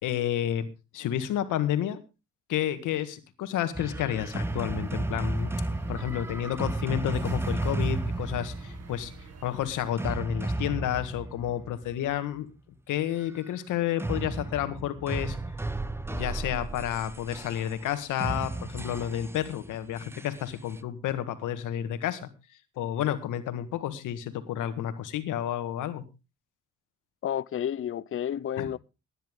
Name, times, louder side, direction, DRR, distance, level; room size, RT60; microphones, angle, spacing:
voice 1, 0.0-0.7 0.9-2.0 2.5-5.5 5.9-9.1 9.4-12.5 12.9-15.4 16.1-22.3 22.8-26.0 28.6-28.7, left 11 dB, 85° left, 1.8 m, -30 dB
sound 1, 3.7-12.1 14.0-20.8, right 2 dB, 10° right, 0.9 m, -33 dB
sound 2, 4.2-10.1, right 6 dB, 55° right, 1.5 m, -49 dB
voice 2, 27.2-28.8, left 10 dB, 45° left, 0.6 m, -31 dB
17.0 x 10.5 x 3.7 m
cardioid pair, 90°, 30 cm